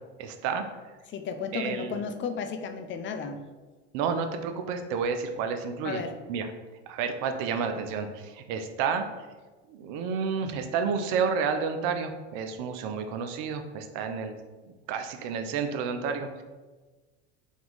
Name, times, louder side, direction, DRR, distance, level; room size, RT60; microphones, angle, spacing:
voice 1, 0.2-0.7 1.5-2.0 3.9-6.0 6.3-6.5 6.9-9.1 9.7-14.4 14.7-16.4, right 6 dB, 65° right, 7 dB, 0.6 m, -30 dB
voice 2, 1.1-3.4 5.8-6.1, left 6 dB, 35° left, 7 dB, 0.5 m, -33 dB
3.7 x 2.9 x 3.9 m, 1.3 s
hypercardioid pair, 85°, 34 cm